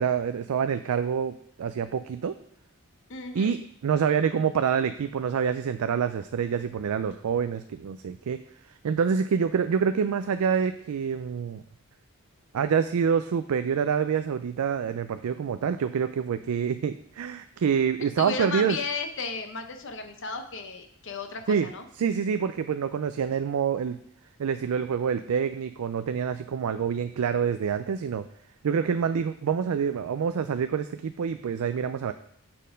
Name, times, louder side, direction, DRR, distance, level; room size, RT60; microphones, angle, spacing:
voice 1, 0.0-2.3 3.3-3.6 3.8-8.4 8.8-11.6 12.5-18.8 21.5-21.7 22.0-24.0 24.4-28.2 28.6-32.1, right 7 dB, 80° right, 10 dB, 0.4 m, -26 dB
voice 2, 3.1-3.5 18.2-21.8, left 4 dB, 55° left, 6 dB, 0.9 m, -34 dB
7.3 x 4.3 x 5.1 m, 0.69 s
head